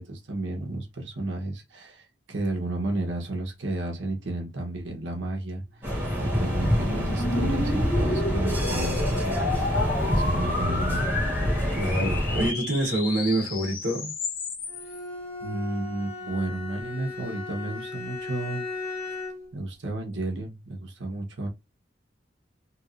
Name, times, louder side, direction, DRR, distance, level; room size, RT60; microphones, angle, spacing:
voice 1, 0.0-5.6 6.2-9.4 10.0-11.1 15.4-18.7 19.5-21.5, right 2 dB, 85° right, 1.2 m, -32 dB
sound 1, 5.3-15.0, left 2 dB, 50° left, 0.9 m, -32 dB
sound 2, 5.8-12.5, equal, 15° right, 1.7 m, -26 dB
voice 2, 11.8-14.1, right 1 dB, 55° right, 1.6 m, -26 dB
Bowed string instrument, 14.7-19.5, left 3 dB, 20° left, 1.7 m, -37 dB
3.3 x 3.2 x 2.6 m
head